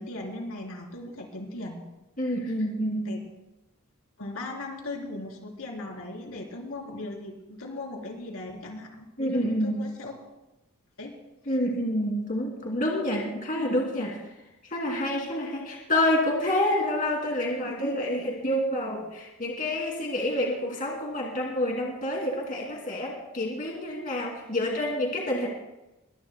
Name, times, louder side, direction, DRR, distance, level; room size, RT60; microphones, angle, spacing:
voice 1, 0.0-1.8 2.3-2.5 3.0-3.2 4.2-10.2 11.0-11.1 11.4-11.6, left 2 dB, 75° left, 0 dB, 3.7 m, -38 dB
voice 2, 2.2-3.1 9.2-9.9 11.5-14.1 14.6-25.5, left 1 dB, 40° left, -1 dB, 2.7 m, -28 dB
22.5 x 20.5 x 2.2 m, 0.99 s
head